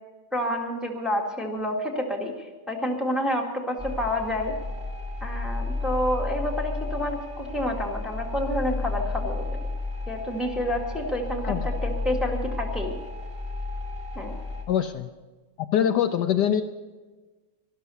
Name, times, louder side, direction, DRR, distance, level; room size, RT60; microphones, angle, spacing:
voice 1, 0.3-4.5 5.2-9.6 10.1-12.9 14.2-14.3, left 1 dB, ahead, -1 dB, 1.7 m, -29 dB
sound 1, 3.8-14.6, left 3 dB, 15° right, 3.0 m, -32 dB
voice 2, 14.7-15.1 15.7-16.6, left 9 dB, 75° left, 8 dB, 1.2 m, -23 dB
13.0 x 12.5 x 6.9 m, 1.3 s
omnidirectional pair, 2.0 m